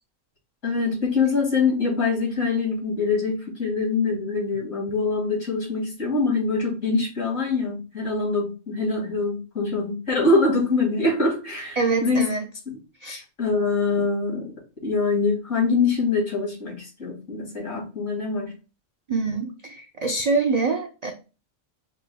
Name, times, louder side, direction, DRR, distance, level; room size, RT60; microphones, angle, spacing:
voice 1, 0.6-12.3 12.7-12.8 13.4-14.5 14.8-18.5, left 3 dB, 75° left, -2 dB, 2.5 m, -24 dB
voice 2, 11.8-12.4 13.0-13.2 19.1-21.1, right 4 dB, 70° right, 4 dB, 0.3 m, -25 dB
5.2 x 2.2 x 3.4 m, 0.32 s
omnidirectional pair, 1.3 m